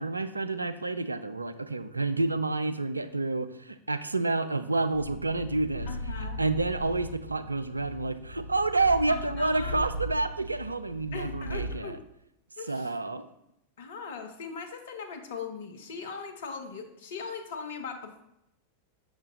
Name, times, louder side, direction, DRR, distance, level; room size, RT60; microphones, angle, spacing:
voice 1, 0.0-5.9 6.4-12.0 12.7-13.3, right 3 dB, 80° right, 11 dB, 0.3 m, -29 dB
Purr, 4.9-11.9, equal, 90° left, 0.3 m, -38 dB
voice 2, 5.9-6.4 9.1-9.8 11.1-12.0 12.6-12.9 13.8-18.2, left 5 dB, 60° left, 6 dB, 0.8 m, -39 dB
6.4 x 6.1 x 2.6 m, 0.80 s
figure-of-eight pair, 90°, 0 cm